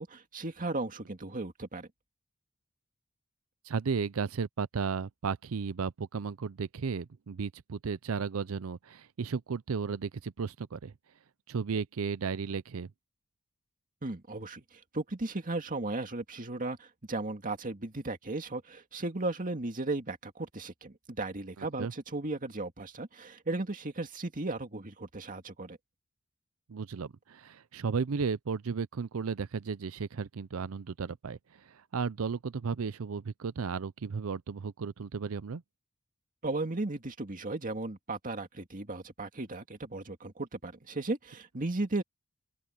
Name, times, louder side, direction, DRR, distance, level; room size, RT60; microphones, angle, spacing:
voice 1, 0.0-1.9 14.0-25.8 36.4-42.0, right 2 dB, 40° right, 2.1 m, -36 dB
voice 2, 3.6-10.9 11.5-12.9 21.6-21.9 26.7-35.6, right 5 dB, 70° right, 0.5 m, -34 dB
head